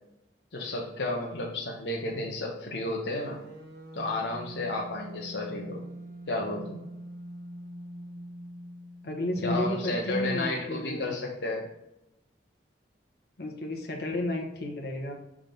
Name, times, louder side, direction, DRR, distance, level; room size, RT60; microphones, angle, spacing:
voice 1, 0.5-3.4 3.9-5.8 6.3-6.8 9.4-11.7, left 2 dB, 80° left, -2 dB, 1.0 m, -32 dB
sound 1, 3.1-9.2, right 1 dB, 65° right, 1.0 m, -44 dB
voice 2, 9.0-11.0 13.4-15.1, left 1 dB, 60° left, 1 dB, 1.2 m, -32 dB
6.1 x 3.6 x 5.2 m, 0.89 s
head